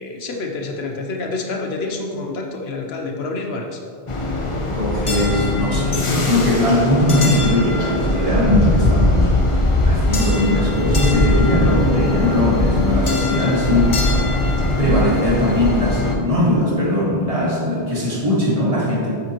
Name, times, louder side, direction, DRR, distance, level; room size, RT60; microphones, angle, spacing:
voice 1, 0.0-3.8, left 3 dB, 85° left, 2 dB, 1.1 m, -28 dB
sound 1, 4.1-16.2, left 2 dB, 35° left, 0.7 m, -20 dB
voice 2, 4.7-9.3 9.8-14.0 14.8-19.2, left 1 dB, 35° right, -4 dB, 1.6 m, -19 dB
8.1 x 7.4 x 3.0 m, 2.3 s
omnidirectional pair, 1.0 m